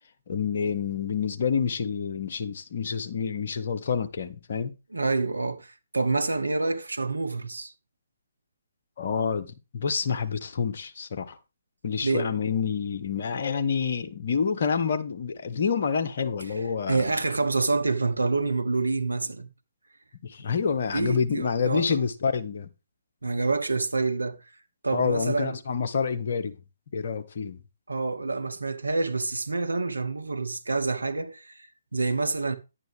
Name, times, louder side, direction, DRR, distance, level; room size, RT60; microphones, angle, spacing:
voice 1, 0.3-4.7 9.0-11.4 11.8-17.1 20.2-22.7 24.9-26.6 26.9-27.6, left 6 dB, 50° left, 1.2 m, -28 dB
voice 2, 4.9-7.7 12.0-12.3 16.9-19.5 20.9-22.0 23.2-24.4 24.8-25.6 27.9-32.6, right 3 dB, 80° right, 1.1 m, -27 dB
10.5 x 8.9 x 3.5 m
figure-of-eight pair, 135°, 0 cm